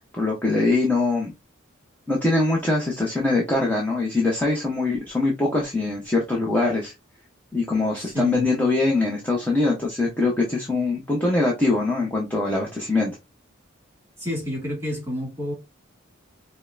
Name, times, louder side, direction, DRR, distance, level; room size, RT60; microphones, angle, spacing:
voice 1, 0.1-1.3 2.1-6.9 7.5-13.1, left 2 dB, 10° left, 0.8 m, -23 dB
voice 2, 7.9-8.5 14.2-15.5, left 1 dB, 10° right, 2.0 m, -29 dB
5.2 x 2.2 x 2.5 m
head